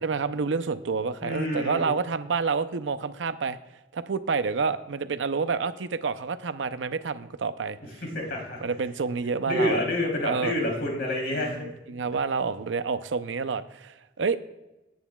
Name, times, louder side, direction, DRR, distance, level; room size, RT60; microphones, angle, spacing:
voice 1, 0.0-3.6 3.9-7.8 8.6-9.8 10.2-10.5 11.3-14.4, right 5 dB, 85° right, 12 dB, 0.6 m, -28 dB
voice 2, 1.2-1.9 8.0-8.6 9.5-11.7, left 1 dB, 60° left, -1 dB, 3.4 m, -28 dB
18.0 x 9.3 x 2.3 m, 1.0 s
head